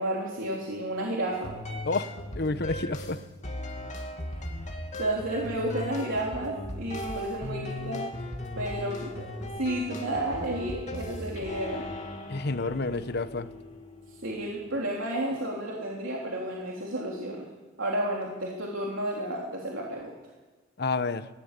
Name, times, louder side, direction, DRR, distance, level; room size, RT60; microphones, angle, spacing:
voice 1, 0.0-1.5 5.0-8.0 8.6-11.8 14.2-17.5 17.8-20.1, right 1 dB, 85° right, -2 dB, 3.5 m, -31 dB
sound 1, 1.3-14.7, left 1 dB, 40° left, 2.8 m, -38 dB
voice 2, 1.8-3.2 12.3-13.5 20.8-21.3, left 3 dB, 55° left, 12 dB, 1.0 m, -30 dB
21.0 x 18.0 x 8.3 m, 1.3 s
head